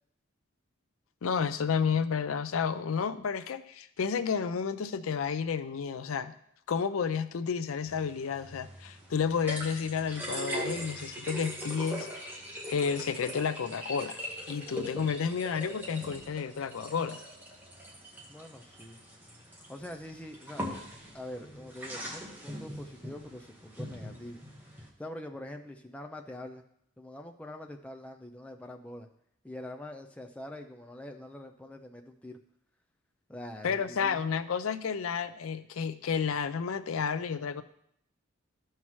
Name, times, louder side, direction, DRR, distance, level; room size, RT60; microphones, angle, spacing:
voice 1, 1.2-6.3 6.7-12.1 12.7-14.2 14.5-17.2 33.6-37.6, left 6 dB, 85° left, 12 dB, 0.5 m, -31 dB
sound 1, 7.9-24.9, equal, 10° right, 1.3 m, -41 dB
voice 2, 15.2-15.7 18.3-19.0 19.5-20.6 21.1-24.4 24.7-26.6 27.0-29.1 29.4-32.4 33.3-34.2, left 1 dB, 5° left, 3 dB, 0.5 m, -44 dB
13.5 x 5.6 x 3.1 m, 0.72 s
head